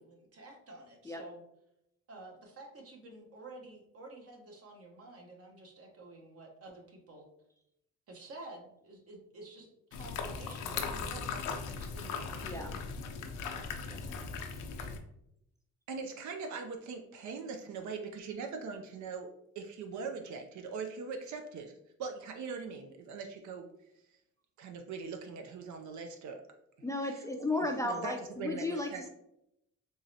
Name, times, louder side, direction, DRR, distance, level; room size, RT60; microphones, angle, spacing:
voice 1, 0.0-1.4 2.1-7.3 8.1-12.8, right 2 dB, 50° right, 1 dB, 1.0 m, -51 dB
sound 1, 9.9-15.0, left 5 dB, 85° left, 0.5 m, -38 dB
voice 2, 13.9-14.4 26.8-29.1, left 2 dB, 10° left, 3 dB, 0.4 m, -35 dB
voice 3, 15.9-19.3 19.6-21.7 22.0-23.7 24.6-26.4 27.0-27.2 27.6-29.0, right 5 dB, 70° right, 4 dB, 0.5 m, -41 dB
3.7 x 3.1 x 2.7 m, 0.80 s
cardioid pair, 90°, 30 cm